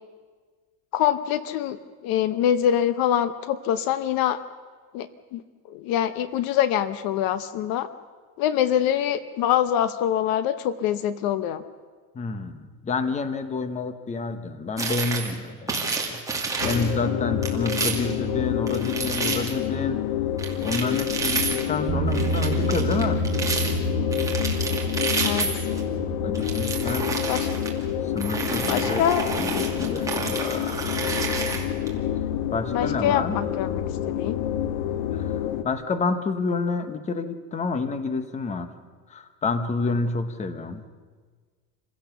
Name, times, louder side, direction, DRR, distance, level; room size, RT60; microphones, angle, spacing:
voice 1, 0.9-4.4 4.9-5.4 5.7-7.9 8.4-11.6 25.2-25.5 27.3-27.5 28.7-29.4 32.7-34.4, left 10 dB, 50° left, 13 dB, 0.9 m, -24 dB
voice 2, 12.1-16.2 16.6-20.0 20.6-23.2 26.2-27.2 28.0-29.1 29.4-30.8 31.1-31.3 32.5-33.4 35.1-38.7 39.1-40.9, left 4 dB, 15° left, 10 dB, 1.0 m, -29 dB
sound 1, 14.8-15.4 15.7-16.9 17.4-18.1 18.7-19.5 20.4-21.7 22.1-23.7 24.1-25.8 26.3-27.7 28.2-31.9, right 4 dB, 5° right, 2.3 m, -30 dB
sound 2, 16.6-35.6, left 11 dB, 70° left, 1.4 m, -28 dB
sound 3, 21.9-34.2, right 3 dB, 25° right, 2.7 m, -32 dB
27.0 x 16.5 x 7.0 m, 1.5 s
cardioid pair, 160°, 45 cm